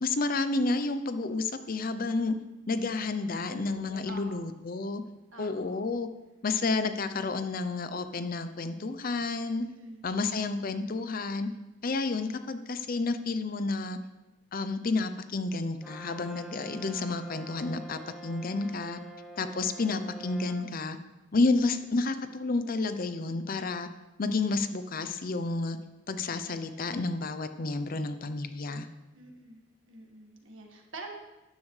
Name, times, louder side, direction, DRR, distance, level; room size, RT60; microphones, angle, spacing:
voice 1, 0.0-2.3 2.7-5.0 5.4-6.1 6.4-9.6 10.0-11.5 11.8-14.0 14.5-19.0 19.4-21.0 21.3-23.9 24.2-25.8 26.1-28.9, left 3 dB, 40° left, 10 dB, 0.5 m, -30 dB
voice 2, 3.9-4.5 5.3-5.8 9.8-10.0 29.1-29.6 29.9-31.1, right 3 dB, 60° right, 2 dB, 1.7 m, -47 dB
Brass instrument, 15.8-20.7, right 1 dB, ahead, 0.9 m, -47 dB
12.5 x 10.5 x 3.3 m, 1.0 s
head